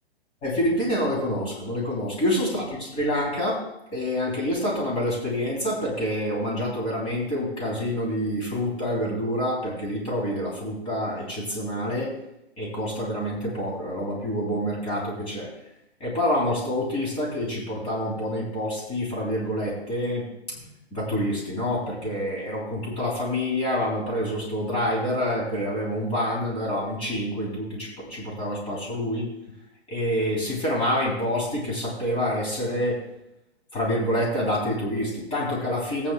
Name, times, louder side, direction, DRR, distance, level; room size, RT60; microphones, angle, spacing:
voice 1, 0.4-3.6 3.9-12.1 12.6-15.5 16.0-29.3 29.9-33.0 33.7-36.1, equal, 15° left, -4 dB, 3.2 m, -27 dB
16.0 x 8.7 x 2.3 m, 0.86 s
figure-of-eight pair, 125°, 33 cm